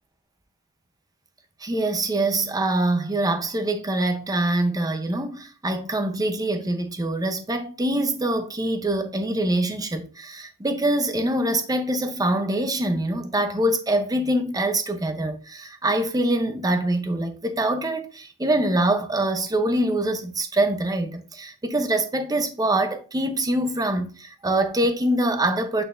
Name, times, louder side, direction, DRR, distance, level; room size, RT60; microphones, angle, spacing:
voice 1, 1.6-25.8, right 1 dB, 15° right, 0.8 m, -24 dB
8.2 x 4.5 x 2.6 m
head